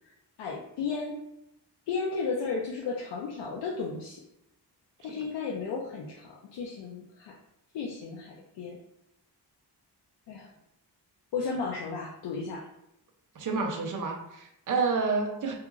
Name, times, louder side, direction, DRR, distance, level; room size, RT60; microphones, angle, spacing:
voice 1, 0.4-1.2 1.9-4.2 5.0-7.3 7.7-8.8 10.3-10.5 11.3-12.6, left 4 dB, 90° left, -2 dB, 0.5 m, -34 dB
voice 2, 13.4-15.5, right 4 dB, 50° right, 2 dB, 0.5 m, -29 dB
2.8 x 2.4 x 2.4 m, 0.81 s
wide cardioid pair, 155°, 42 cm